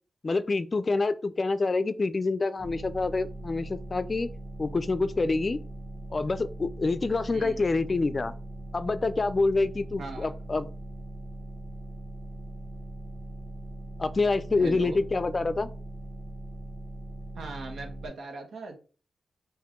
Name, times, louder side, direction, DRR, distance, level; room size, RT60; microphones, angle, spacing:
voice 1, 0.2-4.3 4.6-5.6 6.1-8.3 8.7-10.7 14.0-15.7, left 3 dB, 35° left, 13 dB, 0.4 m, -27 dB
sound 1, 2.6-18.1, right 1 dB, 20° right, 1.6 m, -40 dB
voice 2, 7.3-7.6 10.0-10.3 14.6-15.0 17.4-18.8, right 3 dB, 80° right, 4 dB, 1.2 m, -39 dB
5.6 x 2.6 x 3.6 m, 0.36 s
cardioid pair, 90°, 0 cm